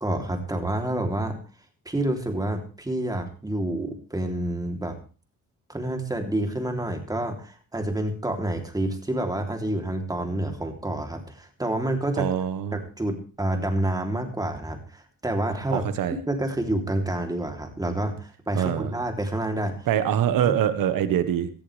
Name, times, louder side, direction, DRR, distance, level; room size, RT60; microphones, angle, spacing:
voice 1, 0.0-1.4 1.8-5.0 5.7-12.3 12.7-15.8 16.3-19.9 20.4-20.6, right 1 dB, 10° right, 4 dB, 3.3 m, -28 dB
voice 2, 12.2-12.8 15.7-16.2 18.5-19.0 19.9-21.5, right 10 dB, 75° right, 11 dB, 1.5 m, -24 dB
17.5 x 14.0 x 3.4 m, 0.37 s
cardioid pair, 110°, 34 cm